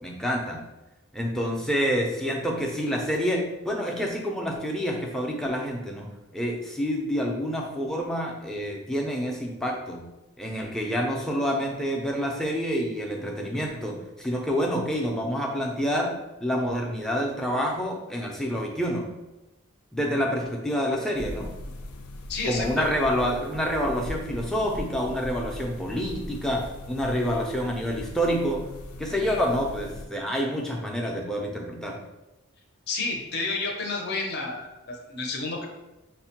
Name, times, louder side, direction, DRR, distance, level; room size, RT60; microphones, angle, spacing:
voice 1, 0.0-0.6 1.1-6.1 6.3-10.1 10.4-16.1 16.4-19.1 19.9-21.5 22.5-28.6 29.0-32.0, equal, ahead, -1 dB, 0.4 m, -28 dB
sound 1, 21.1-30.1, left 1 dB, 85° left, 0.4 m, -39 dB
voice 2, 22.3-22.9 32.9-35.7, left 3 dB, 50° left, -1 dB, 0.7 m, -30 dB
6.0 x 2.1 x 2.8 m, 1.0 s
head